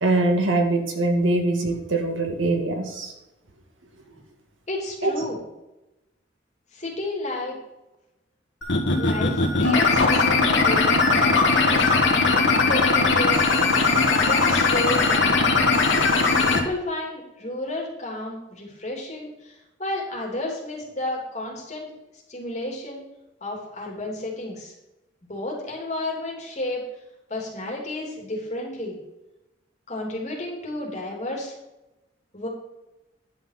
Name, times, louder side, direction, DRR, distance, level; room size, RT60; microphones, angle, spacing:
voice 1, 0.0-3.1 5.0-5.1, right 2 dB, 85° right, 3 dB, 2.0 m, -22 dB
voice 2, 4.7-5.4 6.7-7.5 9.0-11.9 12.3-13.4 14.2-15.5 16.2-21.9 22.3-23.0 23.4-24.7 25.2-26.9 27.3-29.0 29.9-31.5 32.3-32.5, left 1 dB, 35° left, -2 dB, 3.2 m, -32 dB
sound 1, 8.6-16.6, left 3 dB, 70° left, 1.6 m, -19 dB
10.5 x 5.8 x 5.9 m, 0.98 s
head